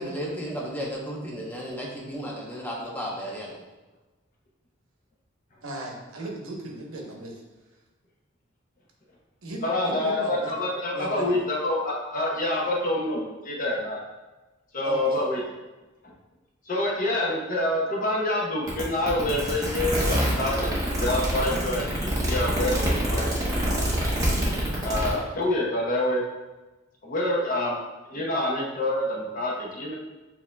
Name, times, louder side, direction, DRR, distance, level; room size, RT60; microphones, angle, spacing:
voice 1, 0.0-3.6, equal, 10° left, -3 dB, 0.8 m, -33 dB
voice 2, 5.6-7.4 9.4-10.5 10.9-11.3 14.8-15.2, right 1 dB, 90° right, 0 dB, 0.9 m, -36 dB
voice 3, 9.6-14.0 14.7-15.4 16.0-16.1 16.7-23.2 24.8-26.2 27.0-27.8 28.1-29.9, left 1 dB, 40° left, -3 dB, 0.9 m, -27 dB
sound 1, 18.7-25.1, right 1 dB, 15° right, 0.9 m, -26 dB
7.1 x 2.8 x 2.2 m, 1.2 s
head